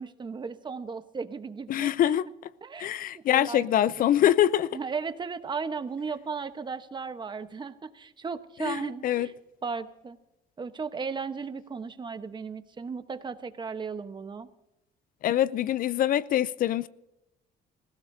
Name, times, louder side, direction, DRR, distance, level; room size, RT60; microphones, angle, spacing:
voice 1, 0.0-1.9 2.6-2.9 3.1-4.3 4.7-9.3 9.6-10.2 10.6-14.5, right 5 dB, 25° right, 1.0 m, -36 dB
voice 2, 1.7-2.3 2.8-4.8 8.6-9.3 15.2-16.9, left 11 dB, 55° left, 0.5 m, -24 dB
26.0 x 16.5 x 2.7 m
cardioid pair, 110°, 17 cm